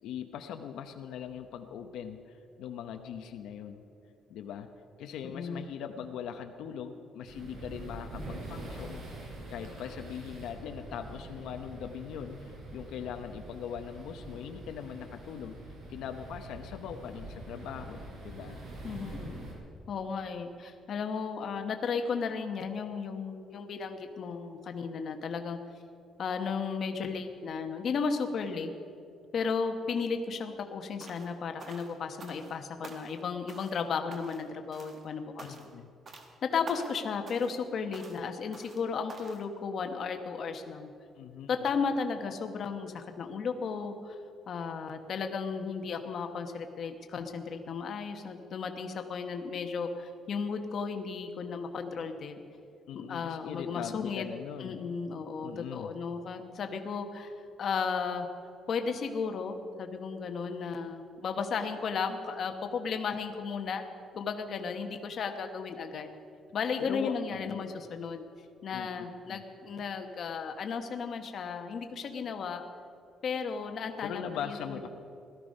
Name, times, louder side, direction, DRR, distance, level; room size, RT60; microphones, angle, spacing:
voice 1, 0.0-3.8 4.3-4.7 5.0-18.6 35.4-36.0 41.1-41.5 52.9-54.9 55.4-56.0 66.8-67.6 68.7-69.4 74.0-74.9, left 8 dB, 80° left, 6 dB, 0.8 m, -41 dB
voice 2, 5.2-5.6 8.2-8.3 18.8-19.5 19.9-25.6 26.2-28.7 29.3-35.5 36.4-40.9 41.5-44.2 44.5-52.4 53.1-54.2 54.6-57.3 57.6-58.3 58.7-63.8 64.1-66.1 66.5-68.2 68.6-72.6 73.2-74.8, left 5 dB, 45° left, 6 dB, 1.1 m, -34 dB
sound 1, 7.3-19.5, right 2 dB, 70° right, 4.2 m, -45 dB
sound 2, 31.0-31.3 31.6-32.6 32.8-33.2 33.5-33.8 34.1-34.5 34.7-35.0 35.4-35.8 36.1-36.3 36.7-37.0 37.3-37.6 37.9-38.2 38.5-38.8 39.1-39.4, right 3 dB, 35° right, 1.5 m, -48 dB
17.5 x 13.0 x 5.4 m, 2.5 s
cardioid pair, 165°, 0 cm